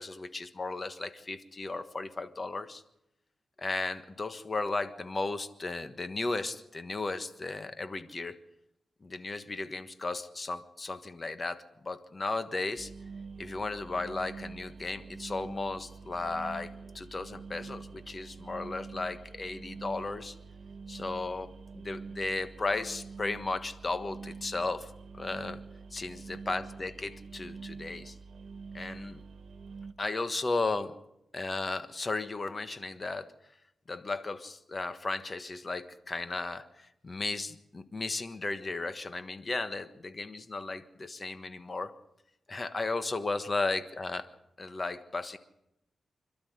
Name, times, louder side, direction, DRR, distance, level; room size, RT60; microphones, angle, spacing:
voice 1, 0.0-2.8 3.6-8.4 9.0-12.9 13.4-20.4 20.9-25.6 25.9-28.2 28.7-29.2 30.0-30.9 31.3-33.3 33.9-41.9 42.5-44.3 44.6-45.4, left 3 dB, 35° left, 10 dB, 1.4 m, -35 dB
sound 1, 12.8-29.9, right 4 dB, 80° right, 1.4 m, -46 dB
26.5 x 12.5 x 8.1 m, 0.83 s
wide cardioid pair, 100°, 0 cm